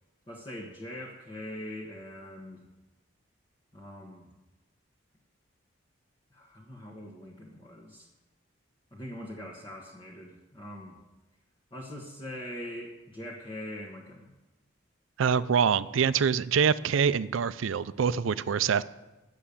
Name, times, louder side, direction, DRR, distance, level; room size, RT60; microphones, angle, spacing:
voice 1, 0.3-2.6 3.7-4.3 6.3-8.1 8.9-11.0 11.7-14.3 18.3-18.5, left 1 dB, 25° left, -5 dB, 1.3 m, -42 dB
voice 2, 15.2-18.8, right 6 dB, 80° right, 16 dB, 0.4 m, -25 dB
9.7 x 6.7 x 8.5 m, 1.1 s
head